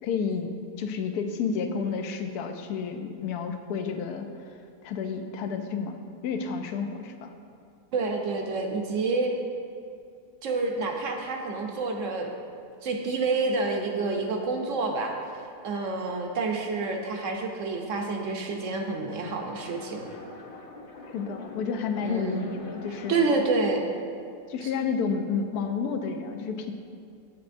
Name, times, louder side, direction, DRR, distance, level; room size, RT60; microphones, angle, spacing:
voice 1, 0.0-4.6 4.8-6.0 6.2-7.3 21.1-23.3 24.5-26.7, left 5 dB, 80° left, 6 dB, 1.1 m, -31 dB
voice 2, 7.9-9.3 10.4-12.3 12.8-15.1 15.6-20.1 22.0-22.4 23.1-23.8 24.6-24.7, right 3 dB, 65° right, 2 dB, 0.9 m, -28 dB
sound 1, 19.1-23.6, left 2 dB, 50° left, 0.7 m, -45 dB
8.3 x 7.4 x 2.6 m, 2.4 s
omnidirectional pair, 1.6 m